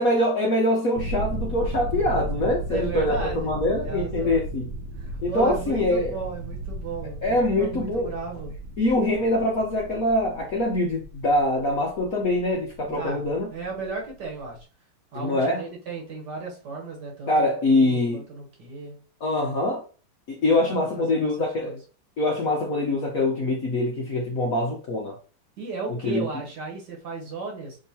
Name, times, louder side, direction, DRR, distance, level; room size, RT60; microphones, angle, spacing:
voice 1, 0.0-4.7 5.2-6.2 7.2-8.1 8.8-13.5 15.1-15.6 17.3-18.2 19.2-19.8 20.3-21.7 22.2-25.1 26.0-26.3, left 1 dB, 60° left, -1 dB, 0.9 m, -24 dB
sound 1, 0.9-14.6, right 1 dB, 75° right, 0.8 m, -35 dB
voice 2, 2.7-3.5 3.8-4.4 5.0-8.6 12.8-14.7 15.1-19.0 20.5-21.8 25.6-27.8, right 4 dB, 55° right, 0 dB, 1.5 m, -35 dB
6.5 x 2.8 x 2.8 m, 0.38 s
omnidirectional pair, 2.4 m